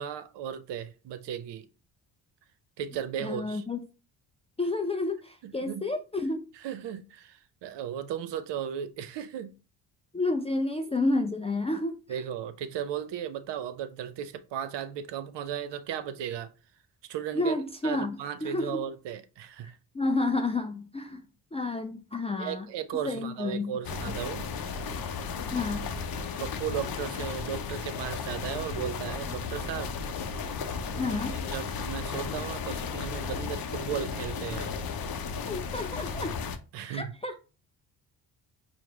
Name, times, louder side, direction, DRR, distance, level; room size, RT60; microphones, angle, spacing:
voice 1, 0.0-1.7 2.8-3.6 5.4-5.9 6.5-9.5 12.1-16.5 17.0-17.6 17.8-19.8 22.4-24.5 26.2-29.9 30.9-34.7 36.7-37.2, right 9 dB, 60° right, 0.6 m, -36 dB
voice 2, 3.2-3.8 4.6-6.4 10.1-12.0 17.3-18.8 19.9-21.2 21.5-22.7 23.0-23.7 24.1-24.2 25.5-25.9 31.0-31.4 35.5-36.3 36.9-37.4, left 2 dB, 15° left, 0.3 m, -30 dB
sound 1, 23.8-36.6, left 5 dB, 50° left, 0.6 m, -34 dB
4.6 x 2.0 x 3.5 m
supercardioid pair, 55°, 48 cm